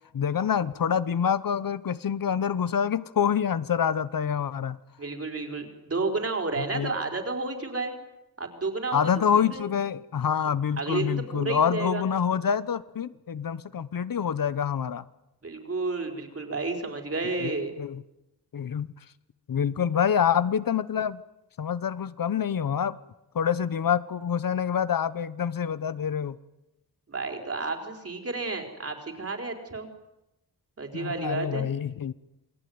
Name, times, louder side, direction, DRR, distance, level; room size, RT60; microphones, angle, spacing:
voice 1, 0.1-4.8 6.6-6.9 8.9-15.0 17.4-17.5 17.8-18.0 18.5-18.9 19.5-21.2 21.6-23.0 23.3-26.4 30.9-32.1, left 8 dB, 65° left, 15 dB, 1.0 m, -26 dB
voice 2, 5.0-7.9 8.4-9.1 9.4-9.6 10.8-12.1 15.4-17.7 27.1-29.9 30.8-31.7, right 3 dB, 40° right, 4 dB, 4.6 m, -31 dB
28.0 x 22.0 x 9.6 m, 0.93 s
wide cardioid pair, 155°, 37 cm